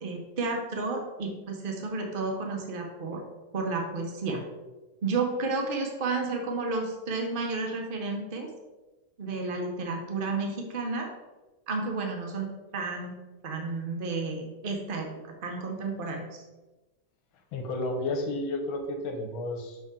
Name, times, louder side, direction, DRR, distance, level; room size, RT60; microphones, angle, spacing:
voice 1, 0.0-3.2 3.5-4.4 5.0-8.5 9.2-11.1 11.7-12.5 12.7-13.1 13.4-15.1 15.4-16.4, right 3 dB, 45° right, 2 dB, 0.6 m, -31 dB
voice 2, 17.5-19.8, left 2 dB, 70° left, 4 dB, 1.6 m, -32 dB
5.9 x 5.7 x 3.7 m, 1.2 s
omnidirectional pair, 2.4 m